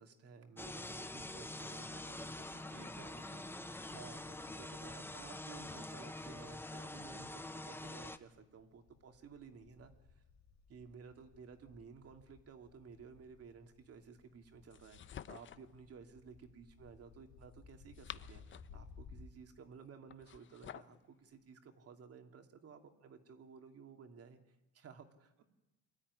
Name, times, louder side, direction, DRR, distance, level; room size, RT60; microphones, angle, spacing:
voice 1, 0.0-3.3 3.9-10.2 10.7-25.4, right 6 dB, 45° right, 5 dB, 2.8 m, -56 dB
sound 1, 0.6-8.2, left 2 dB, 5° left, 1.1 m, -46 dB
voice 2, 2.7-3.9, right 7 dB, 70° right, 4 dB, 3.2 m, -60 dB
sound 2, 5.2-5.3 7.8-7.9 8.1-19.3, left 5 dB, 55° left, 4.1 m, -60 dB
sound 3, 14.7-15.7 17.7-18.8 20.1-21.0, left 9 dB, 35° left, 0.8 m, -51 dB
24.0 x 13.0 x 9.8 m, 0.98 s
supercardioid pair, 95°, 33 cm